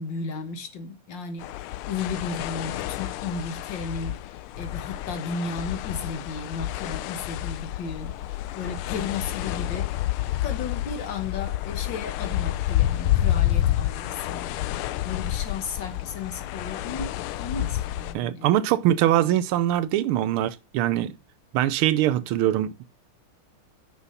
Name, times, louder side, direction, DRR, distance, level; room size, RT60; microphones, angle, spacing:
voice 1, 0.0-9.9 10.4-14.5 15.0-18.5, left 4 dB, 60° left, 1.7 m, -34 dB
sound 1, 1.4-18.1, left 13 dB, 80° left, 1.4 m, -29 dB
voice 2, 18.1-21.1 21.5-22.8, right 12 dB, 85° right, 1.5 m, -23 dB
6.2 x 5.9 x 5.4 m
omnidirectional pair, 2.4 m